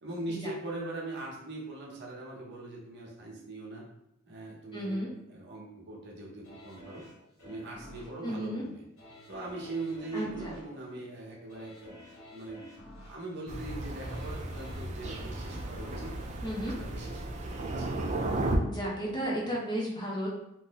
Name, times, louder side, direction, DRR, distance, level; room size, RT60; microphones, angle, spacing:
voice 1, 0.0-3.8 4.3-7.0 7.4-8.8 9.3-12.0 12.3-12.7 13.0-16.1 16.8-17.9, right 2 dB, 50° right, -2 dB, 0.8 m, -41 dB
voice 2, 4.7-5.1 8.2-8.6 10.1-10.5 16.4-16.8 18.6-20.3, equal, 20° left, -4 dB, 0.6 m, -33 dB
sound 1, 6.4-17.4 17.8-17.9, left 1 dB, 70° left, 1.3 m, -52 dB
Thunder, 13.5-18.6, right 2 dB, 30° right, 0.3 m, -35 dB
2.6 x 2.0 x 3.9 m, 0.82 s
head